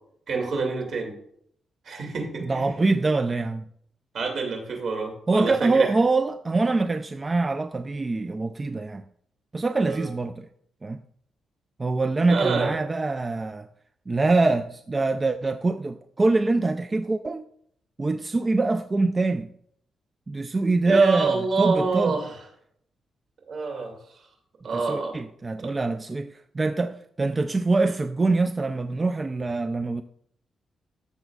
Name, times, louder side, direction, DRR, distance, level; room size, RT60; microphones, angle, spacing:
voice 1, 0.3-1.1 1.8-2.8 4.1-5.9 9.8-10.1 12.3-12.8 20.8-22.4 23.5-24.2 24.6-25.1, right 4 dB, 60° right, 2.5 m, -27 dB
voice 2, 2.4-3.6 5.3-9.0 9.5-10.5 10.8-11.0 11.8-13.7 14.1-17.4 18.0-19.5 20.3-22.2 24.7-30.0, right 3 dB, 25° right, 0.3 m, -24 dB
13.5 x 7.2 x 2.4 m
cardioid pair, 140°, 0 cm